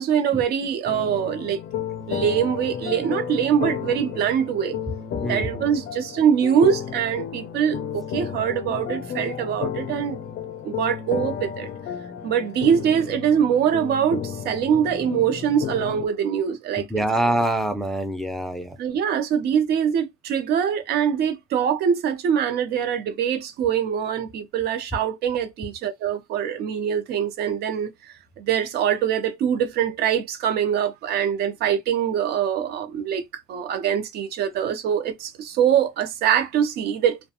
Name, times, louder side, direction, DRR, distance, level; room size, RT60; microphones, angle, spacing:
voice 1, 0.0-1.6 2.1-4.8 5.3-10.2 10.6-11.7 12.2-16.8 18.8-33.2 33.5-37.2, right 8 dB, 70° right, 0.5 m, -23 dB
sound 1, 0.9-16.1, left 8 dB, 65° left, 0.5 m, -32 dB
voice 2, 5.2-5.7 16.8-18.8, right 1 dB, ahead, 0.4 m, -25 dB
2.4 x 2.1 x 2.7 m
cardioid pair, 110°, 17 cm